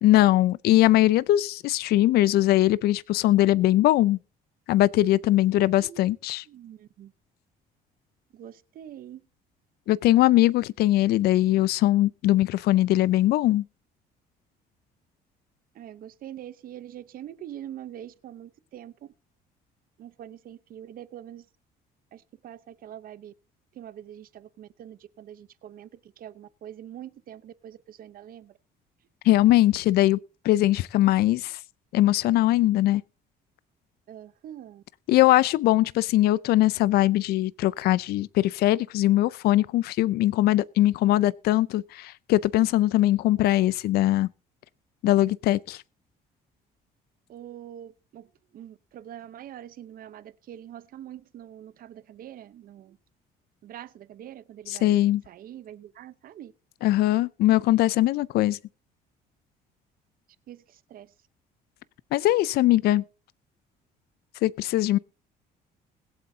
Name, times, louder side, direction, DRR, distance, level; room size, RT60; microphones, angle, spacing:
voice 1, 0.0-4.2 4.7-6.4 9.9-13.6 29.2-30.2 30.4-31.6 31.9-33.0 35.1-44.3 45.0-45.8 54.7-55.2 56.8-58.6 62.1-63.0 64.4-65.0, left 15 dB, 70° left, 0.4 m, -21 dB
voice 2, 6.5-7.1 8.3-9.2 15.7-19.1 20.0-21.4 22.1-23.3 23.7-28.5 34.1-34.8 47.3-53.0 53.6-56.5 60.5-61.1, right 11 dB, 60° right, 0.8 m, -44 dB
21.0 x 7.8 x 2.8 m
cardioid pair, 110°, 17 cm